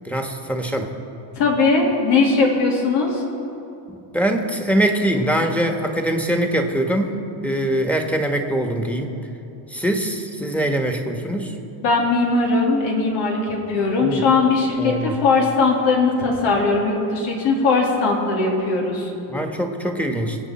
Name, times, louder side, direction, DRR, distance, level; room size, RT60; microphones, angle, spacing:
voice 1, 0.0-0.9 3.9-9.1 9.7-11.5 14.0-14.2 14.8-15.1 19.3-20.4, right 1 dB, 5° left, 2 dB, 1.4 m, -23 dB
voice 2, 1.4-3.2 11.8-19.1, left 3 dB, 90° left, -1 dB, 2.9 m, -19 dB
24.5 x 8.2 x 4.3 m, 2.8 s
cardioid pair, 115°, 47 cm